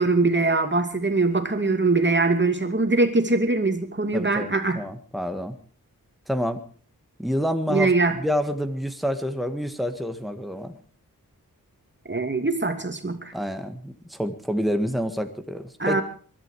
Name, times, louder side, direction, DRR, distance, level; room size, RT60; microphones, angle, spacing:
voice 1, 0.0-4.8 7.7-8.2 12.1-13.3 15.8-16.0, right 3 dB, 30° right, 7 dB, 2.6 m, -22 dB
voice 2, 4.1-4.5 4.7-5.6 6.3-6.6 7.2-10.8 13.3-16.0, equal, ahead, 7 dB, 1.9 m, -28 dB
22.5 x 12.0 x 4.9 m, 0.43 s
wide cardioid pair, 60°, 36 cm